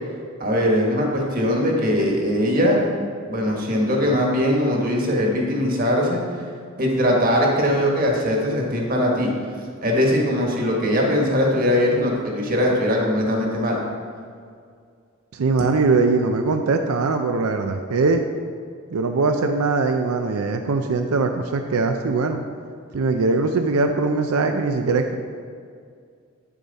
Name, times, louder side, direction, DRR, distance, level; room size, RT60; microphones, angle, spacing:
voice 1, 0.4-2.8 3.3-6.2 6.8-9.3 9.8-13.8, equal, 40° right, -1 dB, 1.5 m, -20 dB
voice 2, 15.3-18.2 18.9-22.4 22.9-25.2, right 3 dB, 90° right, 5 dB, 0.5 m, -21 dB
8.6 x 7.2 x 4.1 m, 2.2 s
head